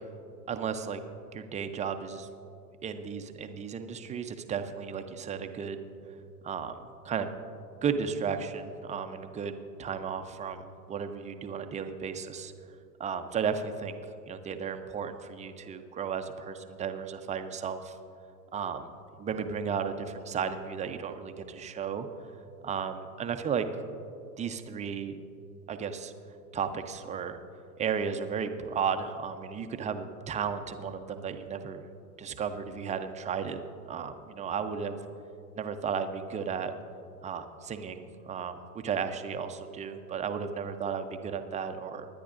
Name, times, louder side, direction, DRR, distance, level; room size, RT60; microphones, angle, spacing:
voice 1, 0.5-1.0 1.3-2.3 2.8-6.1 6.4-6.8 7.0-7.3 7.8-12.5 13.0-14.0 14.3-17.9 18.5-18.9 19.2-22.1 22.6-23.6 24.4-25.1 25.7-26.1 26.5-27.4 27.8-31.8 32.2-33.6 33.9-35.0 35.6-36.7 37.2-42.1, right 6 dB, 15° right, 8 dB, 0.5 m, -34 dB
21.0 x 10.0 x 2.5 m, 2.5 s
hypercardioid pair, 100°, 48 cm